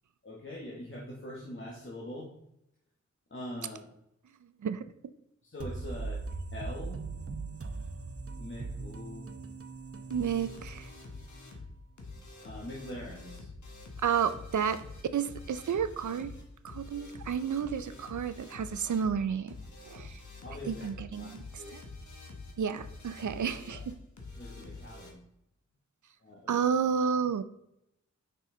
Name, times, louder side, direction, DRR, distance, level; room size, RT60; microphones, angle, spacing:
voice 1, 0.2-2.3 3.3-3.9 5.4-6.2 6.5-7.0 8.4-9.3 12.4-13.5 20.4-20.9 21.2-21.7 23.4-23.8 24.3-25.2 26.2-26.5, left 1 dB, 40° left, -3 dB, 1.4 m, -43 dB
sound 1, 5.6-11.2, right 3 dB, 50° right, 0.8 m, -40 dB
sound 2, 10.1-25.1, left 3 dB, 80° left, 1.4 m, -47 dB
voice 2, 10.1-10.9 14.0-14.8 15.1-16.3 16.6-19.5 19.9-20.2 20.7-21.4 21.7-21.8 22.6-23.9 26.5-27.4, right 7 dB, 85° right, 13 dB, 0.5 m, -31 dB
6.2 x 5.6 x 3.8 m, 0.80 s
wide cardioid pair, 75°, 29 cm